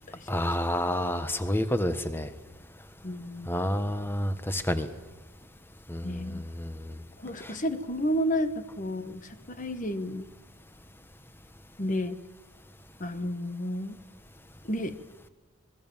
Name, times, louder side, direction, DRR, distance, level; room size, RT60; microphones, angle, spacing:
voice 1, 0.3-2.3 3.5-4.9 5.9-6.9 7.4-7.5, left 1 dB, 10° left, 10 dB, 1.3 m, -29 dB
voice 2, 3.0-3.7 6.0-6.4 7.2-10.2 11.8-12.2 13.0-14.0 14.6-15.0, equal, 35° left, 10 dB, 1.5 m, -31 dB
26.0 x 21.5 x 7.4 m, 1.2 s
head